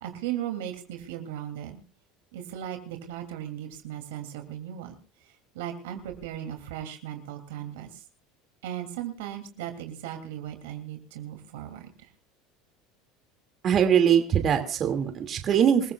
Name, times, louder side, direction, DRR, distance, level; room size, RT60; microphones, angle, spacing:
voice 1, 0.0-1.8 2.3-4.9 5.5-8.0 8.6-12.1, right 11 dB, 85° right, 6 dB, 2.9 m, -37 dB
voice 2, 13.6-15.9, right 8 dB, 45° right, 6 dB, 2.4 m, -22 dB
27.0 x 15.0 x 2.4 m, 0.35 s
supercardioid pair, 105°, 0 cm